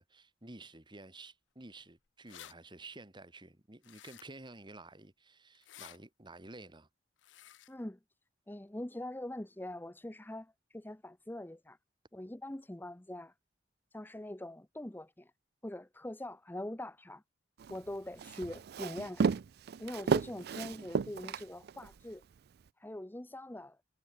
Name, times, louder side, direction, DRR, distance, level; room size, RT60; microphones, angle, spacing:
voice 1, 0.0-6.9, right 2 dB, 25° right, 2.1 m, -52 dB
sound 1, 2.1-2.5 3.8-4.5 5.5-6.0 7.2-7.7, left 11 dB, 75° left, 0.7 m, -53 dB
voice 2, 7.7-8.0 8.5-11.8 12.1-13.3 13.9-15.3 15.6-17.2 17.7-19.3 19.8-22.2 22.8-23.8, left 1 dB, 10° left, 0.7 m, -43 dB
Walk footsteps, 17.6-22.0, right 5 dB, 55° right, 0.4 m, -33 dB
head